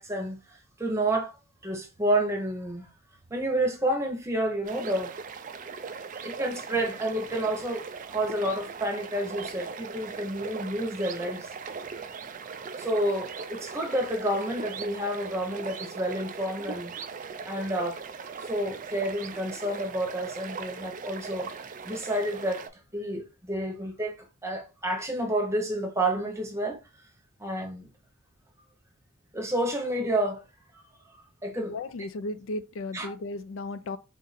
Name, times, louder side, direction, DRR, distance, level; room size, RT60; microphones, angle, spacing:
voice 1, 0.0-1.4 1.6-2.9 3.3-5.1 6.2-11.5 12.8-16.9 17.4-18.0 18.5-21.5 21.8-22.6 22.9-24.2 24.4-26.8 27.4-27.9 29.3-30.4 31.4-31.8 32.9-33.1, right 1 dB, 15° right, 0.8 m, -29 dB
sound 1, 4.6-22.7, right 5 dB, 40° right, 0.4 m, -39 dB
voice 2, 31.6-34.0, left 2 dB, 70° left, 0.4 m, -35 dB
3.7 x 2.5 x 4.1 m
head